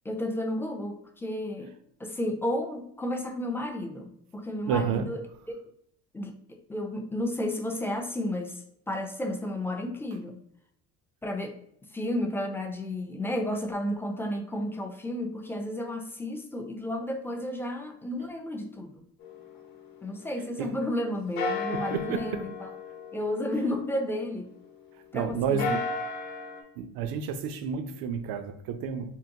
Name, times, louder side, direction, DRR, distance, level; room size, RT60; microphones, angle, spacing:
voice 1, 0.1-1.7 2.0-5.2 5.5-5.6 6.1-10.4 11.2-11.5 11.9-19.0 20.0-22.7 23.1-24.5 25.1-25.8, left 1 dB, 5° left, 0.3 m, -32 dB
voice 2, 4.7-5.1 20.6-20.8 21.7-22.5 25.1-25.8 26.8-29.2, right 7 dB, 75° right, 0.5 m, -30 dB
sound 1, 19.2-21.0 21.4-24.9 25.4-26.6, left 3 dB, 75° left, 0.8 m, -35 dB
3.7 x 2.2 x 2.7 m
cardioid pair, 105°, 35 cm